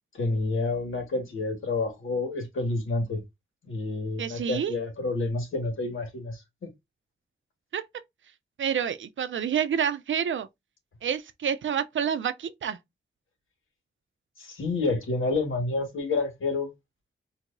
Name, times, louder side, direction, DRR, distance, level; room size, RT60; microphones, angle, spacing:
voice 1, 0.1-3.2 3.6-6.7 14.4-16.7, left 3 dB, 80° left, 1.7 m, -29 dB
voice 2, 4.2-4.7 7.7-7.8 8.6-10.5 11.0-12.8, right 8 dB, 70° right, 0.5 m, -28 dB
4.6 x 2.8 x 2.6 m
wide cardioid pair, 160°, 20 cm